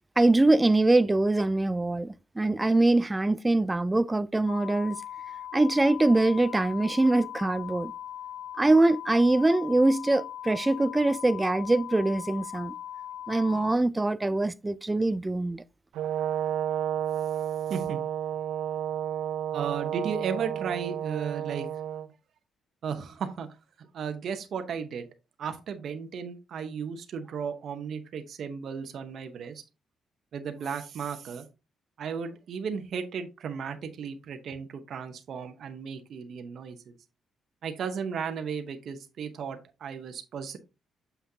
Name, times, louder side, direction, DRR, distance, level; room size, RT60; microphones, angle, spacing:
voice 1, 0.2-5.0 5.5-7.9 8.6-12.8 13.3-15.6, right 2 dB, 15° right, 0.3 m, -23 dB
sound 1, 4.5-13.8, left 11 dB, 70° left, 0.3 m, -40 dB
Brass instrument, 15.9-22.1, right 10 dB, 85° right, 0.5 m, -31 dB
voice 2, 17.7-18.0 19.5-21.7 22.8-23.5 23.8-25.1 25.4-29.6 30.3-31.5 32.0-37.0 37.6-40.6, right 6 dB, 60° right, 0.9 m, -35 dB
7.0 x 5.9 x 2.8 m
cardioid pair, 100°, 0 cm